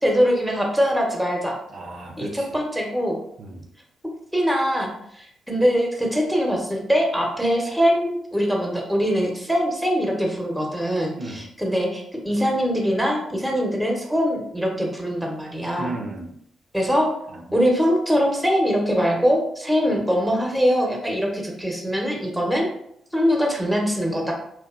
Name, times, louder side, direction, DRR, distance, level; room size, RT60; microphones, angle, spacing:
voice 1, 0.0-1.6 2.2-3.2 4.3-15.9 16.7-17.1 17.5-22.7 23.1-24.3, equal, ahead, 0 dB, 0.8 m, -22 dB
voice 2, 1.7-2.6 3.4-3.6 11.2-11.4 15.8-16.4 17.3-17.5, right 2 dB, 60° right, 1 dB, 0.4 m, -34 dB
2.6 x 2.2 x 2.4 m, 0.72 s
hypercardioid pair, 50°, 0 cm